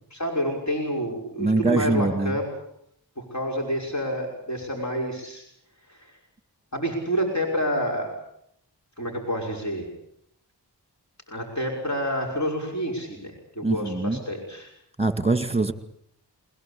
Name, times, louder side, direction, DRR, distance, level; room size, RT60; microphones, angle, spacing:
voice 1, 0.1-2.4 3.2-5.4 5.9-6.1 6.7-8.1 9.0-9.9 11.3-14.7, equal, 40° left, 1 dB, 5.8 m, -28 dB
voice 2, 1.4-2.4 13.6-14.2 15.0-15.7, right 3 dB, 15° right, 11 dB, 2.3 m, -23 dB
21.5 x 21.0 x 8.5 m, 0.71 s
cardioid pair, 40°, 41 cm